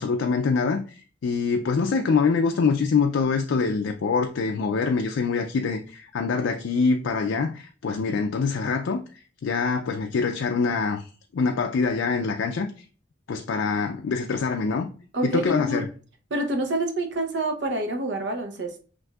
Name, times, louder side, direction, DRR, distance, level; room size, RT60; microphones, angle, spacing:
voice 1, 0.0-9.0 9.4-11.1 11.3-12.7 13.3-14.9 15.2-15.8, left 4 dB, 85° left, 0.4 m, -24 dB
voice 2, 15.1-15.9 16.3-18.8, right 1 dB, 65° right, 0.8 m, -27 dB
6.0 x 2.6 x 2.3 m
head